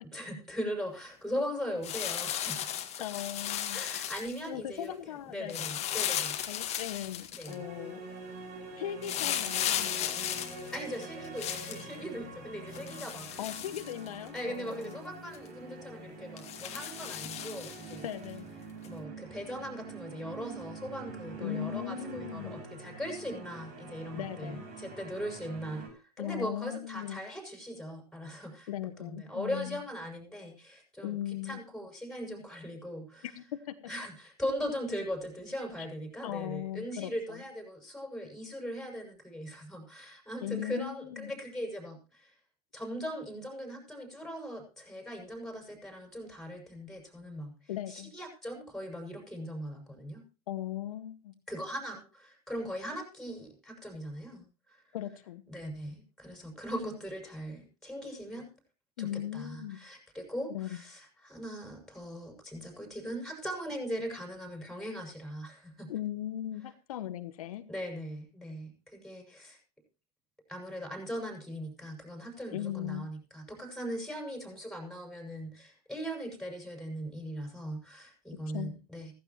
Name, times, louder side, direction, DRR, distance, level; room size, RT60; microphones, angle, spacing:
voice 1, 0.0-2.7 3.7-6.4 7.3-7.6 10.7-13.5 14.3-18.1 18.8-28.7 29.0-33.3 33.9-42.3 42.7-50.2 51.5-54.8 55.5-58.5 59.0-65.9 67.7-69.6 70.5-79.1, equal, ahead, 2 dB, 6.4 m, -40 dB
sound 1, 1.8-4.5 5.5-7.5 9.0-11.8 12.7-14.4 14.8-14.9 15.3-15.5 16.4-18.0 18.8-18.9, left 10 dB, 35° left, 1.9 m, -35 dB
voice 2, 3.0-3.8 4.5-5.8 6.5-8.0 8.8-10.3 13.4-15.0 18.0-18.4 21.4-22.6 24.1-24.6 26.2-27.2 28.7-29.8 31.0-31.6 33.2-33.8 36.2-37.4 40.4-41.3 47.7-48.1 50.5-51.3 54.9-55.4 59.0-59.8 60.5-60.8 65.9-67.7 72.5-73.1 78.5-78.8, left 12 dB, 65° left, 12 dB, 1.2 m, -38 dB
sound 2, 7.5-25.9, right 3 dB, 50° right, 6.2 m, -45 dB
16.0 x 15.0 x 3.0 m, 0.32 s
hypercardioid pair, 95°, 20 cm